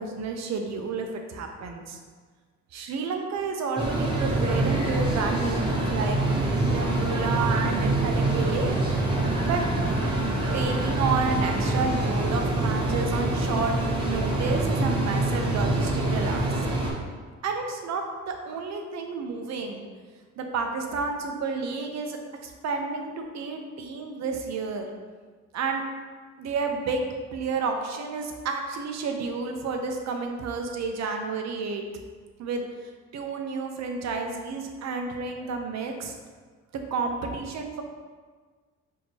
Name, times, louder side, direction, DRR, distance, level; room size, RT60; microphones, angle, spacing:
voice 1, 0.0-2.0 2.7-8.8 9.4-10.0 10.5-13.7 14.0-16.7 17.4-19.9 20.4-24.9 25.5-25.8 26.4-31.8 32.4-32.6 33.1-36.1 36.9-37.8, right 4 dB, 60° right, 3 dB, 0.6 m, -30 dB
sound 1, 3.8-16.9, right 2 dB, 15° right, 0.9 m, -25 dB
4.4 x 2.8 x 2.7 m, 1.5 s
cardioid pair, 90°, 30 cm